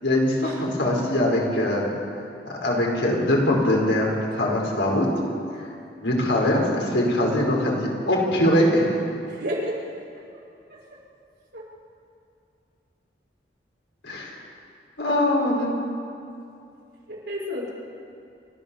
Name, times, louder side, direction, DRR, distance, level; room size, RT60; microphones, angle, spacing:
voice 1, 0.0-1.9 2.6-5.0 6.0-9.0 14.0-14.3 15.0-15.7, left 1 dB, 80° left, -1 dB, 5.0 m, -22 dB
voice 2, 9.3-9.8 10.7-10.8 11.5-11.6 17.1-17.7, equal, 65° right, -4 dB, 6.1 m, -31 dB
29.5 x 13.5 x 7.1 m, 2.6 s
head